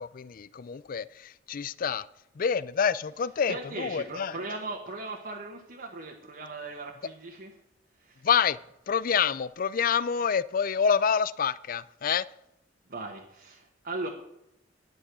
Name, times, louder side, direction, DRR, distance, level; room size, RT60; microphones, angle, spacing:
voice 1, 0.0-2.1 2.4-4.4 8.2-8.6 8.9-12.2, left 7 dB, 50° left, 0.4 m, -27 dB
voice 2, 3.5-7.5 8.0-8.3 12.9-14.1, right 2 dB, 55° right, 1.5 m, -38 dB
11.5 x 9.6 x 6.2 m
head